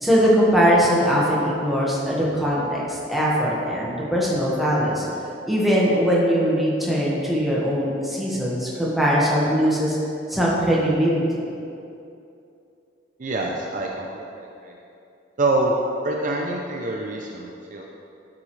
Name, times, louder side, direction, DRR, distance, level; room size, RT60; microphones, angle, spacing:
voice 1, 0.0-5.0 5.5-9.9 10.3-11.4, equal, ahead, -6 dB, 1.5 m, -21 dB
voice 2, 13.2-14.8 15.4-15.8 16.0-17.8, right 2 dB, 45° right, 0 dB, 0.6 m, -26 dB
11.5 x 6.1 x 3.3 m, 2.6 s
head